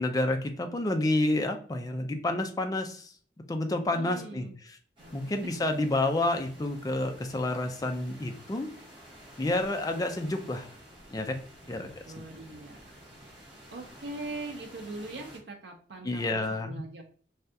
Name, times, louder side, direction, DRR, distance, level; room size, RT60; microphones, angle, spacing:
voice 1, 0.0-3.1 3.5-4.5 5.1-8.7 9.4-10.7 11.1-11.4 11.7-11.9 16.0-16.8, left 2 dB, 20° left, 5 dB, 0.4 m, -29 dB
voice 2, 3.9-4.5 5.0-5.3 11.7-17.0, right 2 dB, 85° right, 1 dB, 0.5 m, -42 dB
sound 1, 5.0-15.4, equal, 30° right, 1.1 m, -51 dB
3.3 x 2.3 x 2.6 m, 0.43 s
head